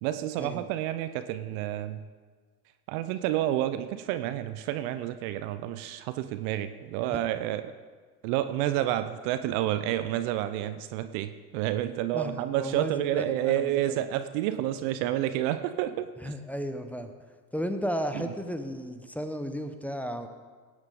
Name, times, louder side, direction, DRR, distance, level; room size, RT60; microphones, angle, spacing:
voice 1, 0.0-2.0 2.9-7.6 8.2-16.3 18.1-18.3, right 12 dB, 65° right, 11 dB, 0.8 m, -29 dB
voice 2, 12.1-14.0 16.2-17.1 17.5-20.3, equal, 5° left, 7 dB, 1.1 m, -34 dB
18.0 x 8.9 x 3.8 m, 1.5 s
hypercardioid pair, 65°, 47 cm